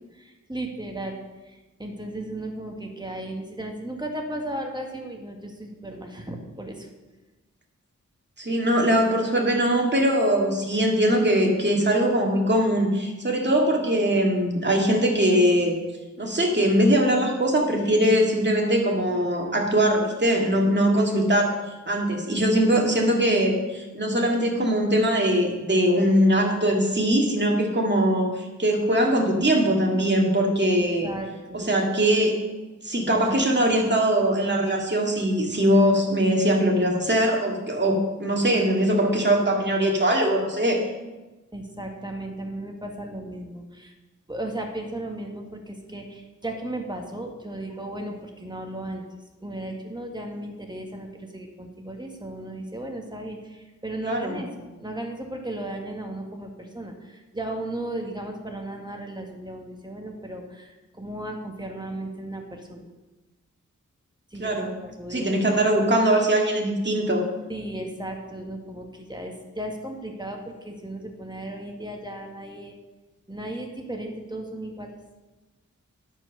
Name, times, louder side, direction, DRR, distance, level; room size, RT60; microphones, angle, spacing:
voice 1, 0.1-6.9 30.8-31.7 41.5-43.9 44.3-49.0 49.4-62.9 64.3-65.3 67.5-72.8 73.3-74.9, right 1 dB, 15° right, 2 dB, 1.7 m, -35 dB
voice 2, 8.4-15.8 16.2-21.5 21.9-31.1 31.5-32.3 32.8-40.8 54.0-54.4 64.4-64.7 65.1-67.2, right 1 dB, 35° right, 0 dB, 2.3 m, -21 dB
9.6 x 7.3 x 6.7 m, 1.1 s
wide cardioid pair, 90°, 30 cm